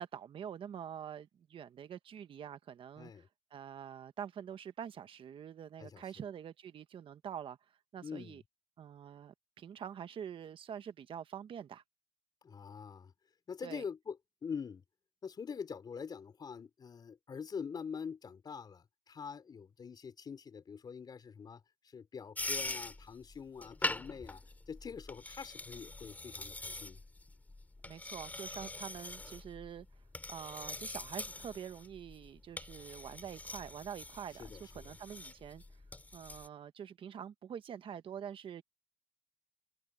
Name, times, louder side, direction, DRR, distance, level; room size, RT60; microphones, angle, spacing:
voice 1, 0.0-3.3 3.5-7.6 7.9-8.4 8.8-11.8 13.6-13.8 27.8-29.9 30.3-35.6 36.1-38.6, right 8 dB, 45° right, 1.3 m, -46 dB
voice 2, 3.0-3.3 5.8-6.0 8.0-8.4 12.4-13.1 13.5-14.2 14.4-14.8 15.2-21.6 21.9-24.4 24.7-27.0 34.4-34.6, left 6 dB, 35° left, 4.0 m, -44 dB
sound 1, 22.4-36.5, left 2 dB, 10° left, 3.4 m, -43 dB
cardioid pair, 115°, 13 cm